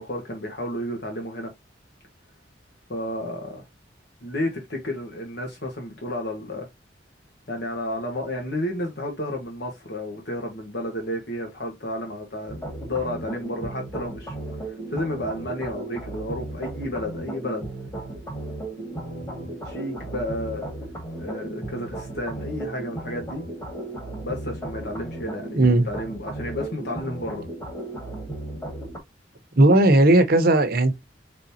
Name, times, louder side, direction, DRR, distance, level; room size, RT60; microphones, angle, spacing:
voice 1, 0.0-1.5 2.9-3.6 4.2-6.7 7.5-12.5 12.8-14.3 14.7-17.6 18.7-20.7 21.2-23.4 24.2-25.6 25.9-27.4, left 1 dB, 60° left, 1.3 m, -32 dB
sound 1, 12.5-29.0, right 2 dB, 20° left, 1.9 m, -35 dB
voice 2, 25.6-25.9 29.6-30.9, right 2 dB, 55° right, 0.9 m, -16 dB
5.0 x 3.5 x 2.7 m
head